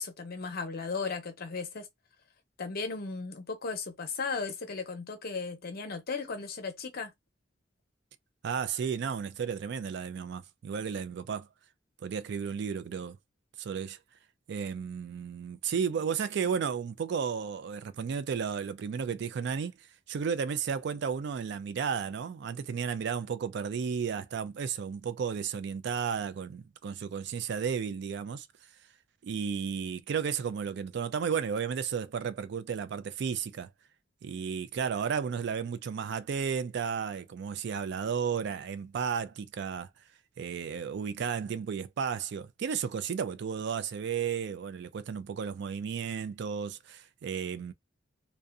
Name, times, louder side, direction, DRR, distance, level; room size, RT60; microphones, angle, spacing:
voice 1, 0.0-1.9 2.6-7.1, left 4 dB, 50° left, 0.7 m, -36 dB
voice 2, 8.4-11.5 12.0-13.2 13.6-14.0 14.5-19.7 20.1-28.5 29.2-33.7 34.2-39.9 40.4-47.7, right 6 dB, 60° right, 0.3 m, -33 dB
2.6 x 2.1 x 2.4 m
head